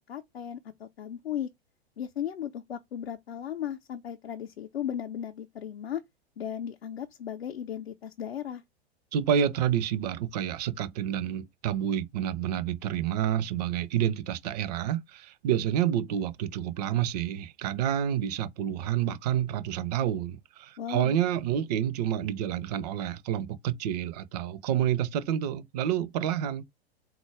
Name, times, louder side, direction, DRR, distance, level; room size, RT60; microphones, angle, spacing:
voice 1, 0.1-1.5 2.0-6.0 6.4-8.6 20.8-21.2, left 9 dB, 70° left, 0.6 m, -36 dB
voice 2, 9.1-26.6, right 10 dB, 40° right, 0.5 m, -29 dB
3.9 x 2.3 x 4.5 m
figure-of-eight pair, 95°, 32 cm